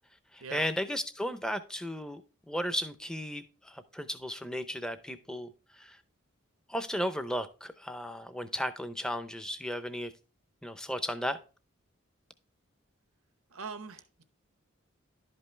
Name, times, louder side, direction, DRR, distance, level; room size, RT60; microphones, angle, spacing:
voice 1, 0.3-2.2 2.5-5.5 5.8-6.0 6.7-10.1 10.6-11.4, equal, 5° left, 10 dB, 0.6 m, -35 dB
voice 2, 13.5-14.2, right 5 dB, 90° right, 11 dB, 0.9 m, -42 dB
11.5 x 5.3 x 3.3 m, 0.35 s
head